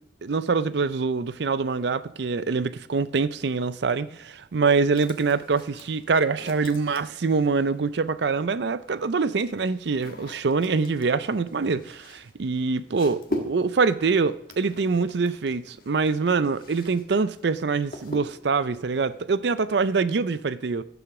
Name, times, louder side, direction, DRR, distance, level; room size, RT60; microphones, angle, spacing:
voice 1, 0.2-20.8, right 4 dB, 65° right, 0.5 m, -24 dB
sound 1, 4.9-7.8 8.8-17.0 17.3-18.6, left 1 dB, 50° left, 1.7 m, -41 dB
14.5 x 7.0 x 6.0 m
head